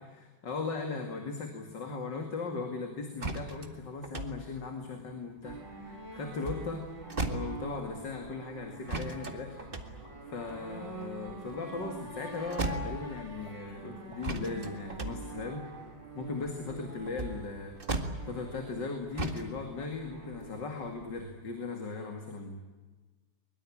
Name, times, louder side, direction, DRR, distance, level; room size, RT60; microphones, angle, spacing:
voice 1, 0.0-6.8 7.3-10.0 10.3-15.7 16.2-22.6, left 4 dB, 60° left, 4 dB, 3.0 m, -38 dB
sound 1, 3.2-5.9 6.3-8.0 8.9-12.2 12.5-13.5 14.2-18.8 19.1-19.5, right 2 dB, 25° right, 2.0 m, -37 dB
sound 2, 5.4-21.4, right 2 dB, 65° right, 4.8 m, -46 dB
sound 3, 10.0-10.6 11.0-11.1 11.5-12.0 12.4-12.5 12.9-13.0 13.4-13.6 14.0-15.2 15.4-15.6 16.0-16.3, equal, 35° left, 5.3 m, -58 dB
23.0 x 22.0 x 8.8 m, 1.3 s
omnidirectional pair, 2.2 m